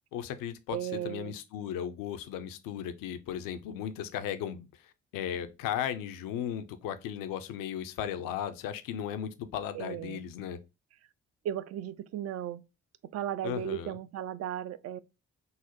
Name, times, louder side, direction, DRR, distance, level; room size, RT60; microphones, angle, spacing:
voice 1, 0.1-10.6 13.4-14.0, left 9 dB, 70° left, 0.6 m, -36 dB
voice 2, 0.7-1.3 9.7-10.2 11.4-12.6 13.1-15.0, right 10 dB, 45° right, 0.4 m, -35 dB
3.9 x 2.1 x 2.9 m
hypercardioid pair, 45°, 35 cm